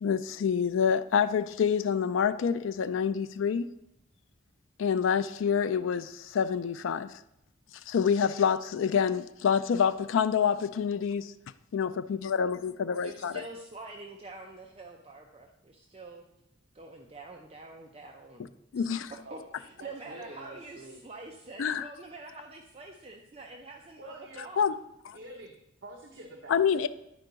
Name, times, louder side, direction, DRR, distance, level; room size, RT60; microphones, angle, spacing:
voice 1, 0.0-3.7 4.8-7.1 7.9-11.3 11.7-13.4 18.7-19.1 21.6-21.9 24.6-24.7 26.5-26.9, left 7 dB, 75° left, 0.4 m, -27 dB
voice 2, 13.0-16.2 16.7-24.7, right 3 dB, 30° right, 0.5 m, -46 dB
voice 3, 19.2-21.0 24.0-24.5 25.1-25.5 25.8-26.9, right 1 dB, 65° right, 0.8 m, -47 dB
10.5 x 4.5 x 3.9 m
head